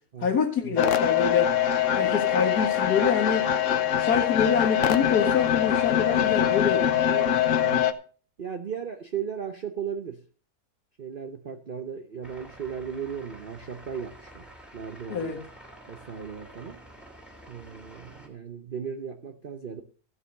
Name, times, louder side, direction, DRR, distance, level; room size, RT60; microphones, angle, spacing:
voice 1, 0.2-1.5 2.0-3.5 4.0-6.9 15.1-15.4, left 6 dB, 80° left, 2.3 m, -26 dB
sound 1, 0.8-7.9, left 9 dB, 60° left, 1.1 m, -23 dB
voice 2, 7.1-7.8 8.4-10.2 11.0-14.5 14.7-15.3 15.9-16.8 17.5-19.8, right 7 dB, 40° right, 0.9 m, -36 dB
sound 2, 12.2-18.3, right 1 dB, ahead, 2.8 m, -49 dB
15.0 x 5.6 x 6.5 m
omnidirectional pair, 1.7 m